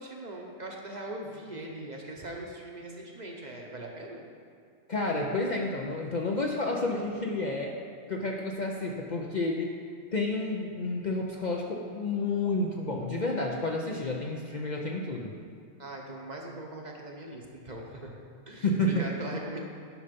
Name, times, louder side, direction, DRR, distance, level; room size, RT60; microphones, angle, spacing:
voice 1, 0.0-4.2 15.8-18.2 18.5-19.6, right 1 dB, 40° right, 0 dB, 0.9 m, -40 dB
voice 2, 4.9-7.7 8.1-9.8 10.1-15.3 18.6-19.1, left 2 dB, 45° left, 0 dB, 0.6 m, -30 dB
10.5 x 5.5 x 5.2 m, 2.2 s
omnidirectional pair, 1.3 m